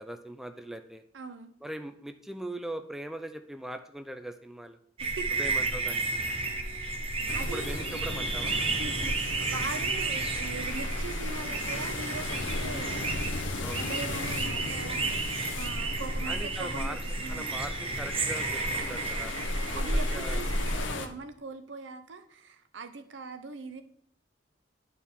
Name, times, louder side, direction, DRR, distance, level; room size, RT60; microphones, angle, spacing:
voice 1, 0.0-1.0 1.6-4.8 5.4-6.2 7.5-8.6 13.6-14.0 16.3-17.0 17.3-19.4 19.7-20.4, right 1 dB, ahead, 7 dB, 0.4 m, -40 dB
voice 2, 1.1-1.5 5.0-5.3 6.6-7.9 8.7-13.2 13.6-17.5 19.7-23.8, right 4 dB, 75° right, 8 dB, 0.7 m, -41 dB
sound 1, 5.0-20.9, right 3 dB, 30° right, 0.8 m, -32 dB
sound 2, 5.6-18.6, left 2 dB, 50° left, 0.8 m, -53 dB
sound 3, 7.3-21.1, left 3 dB, 80° left, 0.7 m, -37 dB
10.0 x 4.6 x 3.5 m, 0.69 s
head